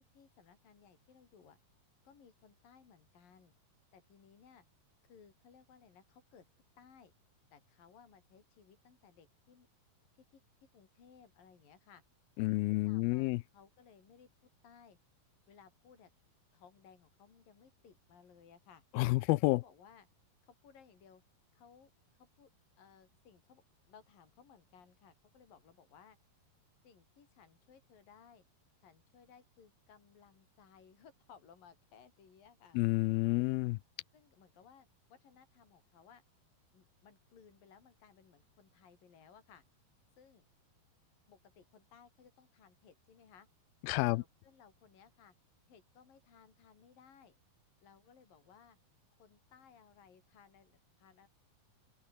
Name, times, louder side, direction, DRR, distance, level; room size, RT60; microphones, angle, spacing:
voice 1, 0.0-1.6 2.0-3.5 3.9-4.6 5.0-6.5 6.8-7.1 7.5-9.7 10.3-10.4 10.7-12.0 12.5-14.3 14.6-15.0 15.5-16.1 16.5-18.8 19.5-20.1 20.4-21.2 21.5-21.9 22.2-22.5 22.8-26.2 26.8-28.4 28.8-32.8 34.1-36.2 36.7-39.6 40.2-40.5 41.3-43.5 44.1-45.3 45.7-47.4 47.8-48.8 49.2-51.3, left 7 dB, 65° left, 5.9 m, -61 dB
voice 2, 12.4-13.4 18.9-19.6 32.8-33.8 43.8-44.2, left 21 dB, 80° left, 2.4 m, -30 dB
open air
omnidirectional pair, 4.4 m